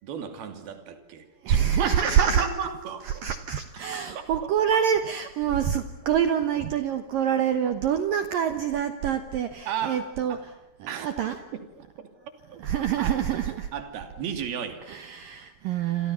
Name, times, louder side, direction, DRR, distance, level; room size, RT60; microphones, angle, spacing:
voice 1, 0.0-3.2 4.1-4.3 7.9-8.0 9.7-10.4 10.9-11.7 12.0-12.1 13.0-13.2 13.7-14.8, right 8 dB, 55° right, 8 dB, 4.3 m, -34 dB
voice 2, 1.4-2.5 3.0-10.5 10.8-11.4 12.6-13.7 14.9-16.1, right 8 dB, 85° right, 9 dB, 1.9 m, -26 dB
28.5 x 27.0 x 7.0 m, 0.94 s
omnidirectional pair, 5.8 m